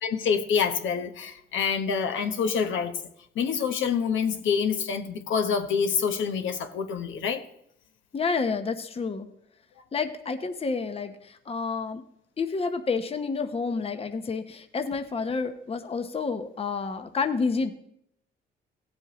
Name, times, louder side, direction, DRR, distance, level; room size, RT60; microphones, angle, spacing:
voice 1, 0.0-2.9 3.3-7.4, left 6 dB, 75° left, 6 dB, 1.1 m, -26 dB
voice 2, 8.1-9.3 9.9-12.0 12.4-17.7, left 4 dB, 30° left, 8 dB, 0.8 m, -29 dB
16.5 x 7.8 x 3.0 m, 0.74 s
cardioid pair, 90°, 20 cm